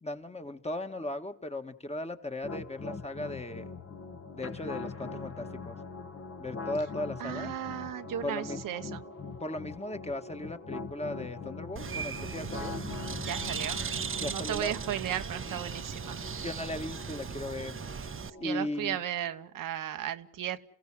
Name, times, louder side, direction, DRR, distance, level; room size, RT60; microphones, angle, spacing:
voice 1, 0.0-3.7 4.3-5.8 6.4-7.5 8.2-8.8 9.4-12.7 14.2-14.7 16.3-17.8 18.4-19.0, left 1 dB, 20° left, 7 dB, 1.8 m, -37 dB
sound 1, 2.4-18.4, left 4 dB, 45° left, 1.9 m, -42 dB
voice 2, 7.2-9.0 13.3-13.8 14.2-16.2 18.4-20.6, right 11 dB, 75° right, 9 dB, 1.1 m, -35 dB
Bird, 11.8-18.3, right 6 dB, 40° right, 1.0 m, -37 dB
27.5 x 16.0 x 7.5 m, 0.70 s
supercardioid pair, 55°, 33 cm